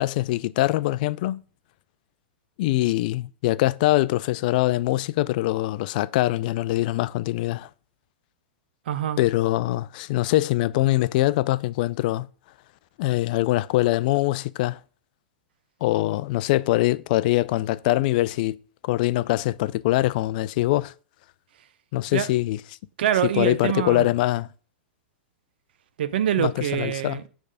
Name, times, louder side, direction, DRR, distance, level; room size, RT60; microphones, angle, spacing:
voice 1, 0.0-1.4 2.6-7.7 9.2-12.3 13.0-14.8 15.8-18.6 18.8-20.9 21.9-22.6 23.3-24.5 26.4-27.2, left 17 dB, 55° left, 0.3 m, -23 dB
voice 2, 8.9-9.2 22.1-22.3 23.0-24.1 26.0-27.2, right 10 dB, 70° right, 0.6 m, -25 dB
6.4 x 3.5 x 4.9 m
hypercardioid pair, 115°, 6 cm